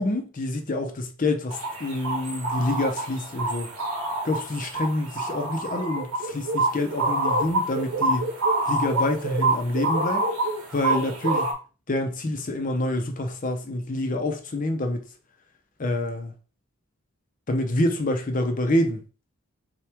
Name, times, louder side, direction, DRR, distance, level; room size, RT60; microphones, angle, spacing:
voice 1, 0.0-3.7 4.2-8.3 8.7-10.3 10.7-11.5 11.9-15.0 15.8-16.3 17.5-19.0, left 1 dB, 35° left, 0.6 m, -27 dB
sound 1, 1.5-11.5, right 2 dB, 80° right, 1.4 m, -27 dB
5.6 x 2.3 x 3.4 m
head